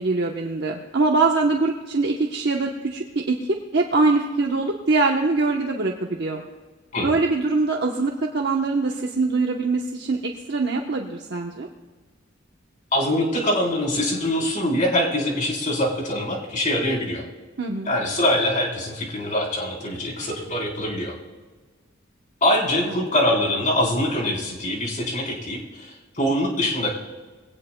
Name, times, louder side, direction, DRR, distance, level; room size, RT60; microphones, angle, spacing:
voice 1, 0.0-6.4 7.0-11.7 17.6-17.9, right 3 dB, 55° right, 1 dB, 1.0 m, -23 dB
voice 2, 12.9-17.2 17.8-21.1 22.4-26.9, left 1 dB, 40° left, -2 dB, 3.9 m, -23 dB
22.0 x 17.5 x 2.2 m, 1.3 s
head